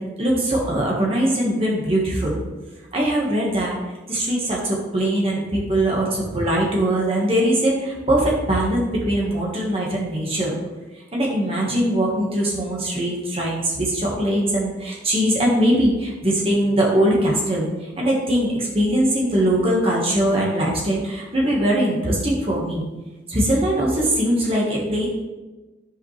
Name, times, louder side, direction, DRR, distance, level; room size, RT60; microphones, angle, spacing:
voice 1, 0.0-2.4 2.9-3.8 4.1-10.5 10.9-22.9 23.3-25.1, right 1 dB, 30° right, -3 dB, 1.6 m, -21 dB
13.5 x 5.1 x 3.3 m, 1.2 s
head